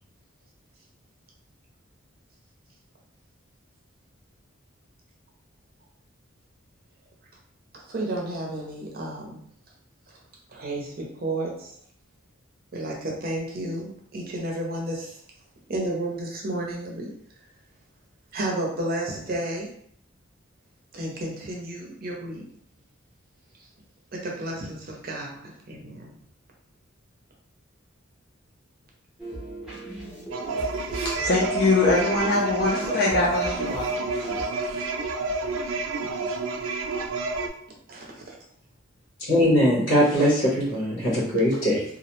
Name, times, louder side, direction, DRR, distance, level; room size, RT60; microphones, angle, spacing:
voice 1, 7.7-9.4 10.5-11.7 12.7-15.2 15.7-17.1 18.3-19.7 20.9-22.4 24.1-26.2 34.4-34.8 36.3-36.4 37.9-38.4, right 1 dB, 45° right, -1 dB, 0.6 m, -32 dB
sound 1, 29.2-34.5, right 1 dB, 5° right, 0.6 m, -38 dB
sound 2, 30.3-37.5, right 3 dB, 85° right, 0.3 m, -29 dB
voice 2, 31.0-33.9 34.2-34.3, left 2 dB, 50° left, -5 dB, 0.4 m, -23 dB
voice 3, 39.3-41.8, equal, 80° left, -8 dB, 0.9 m, -21 dB
2.4 x 2.0 x 2.9 m, 0.65 s
head